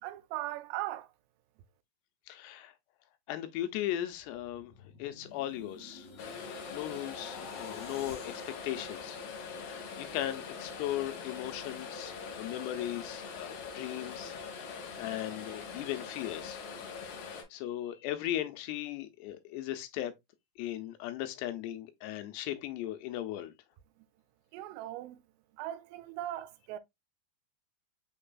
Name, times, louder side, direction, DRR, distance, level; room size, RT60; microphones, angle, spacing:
voice 1, 0.0-1.1 24.0-24.1 24.5-25.2 25.5-26.8, right 14 dB, 90° right, 2.7 m, -39 dB
voice 2, 2.3-2.7 3.3-4.7 5.0-6.1 6.7-9.2 9.6-14.7 15.0-16.6 17.5-20.1 20.6-23.5, left 13 dB, 85° left, 2.8 m, -37 dB
sound 1, 4.1-10.4 10.8-11.1, left 2 dB, 45° left, 2.7 m, -50 dB
sound 2, 6.2-17.4, left 5 dB, 70° left, 1.9 m, -43 dB
6.2 x 3.3 x 2.2 m
omnidirectional pair, 4.7 m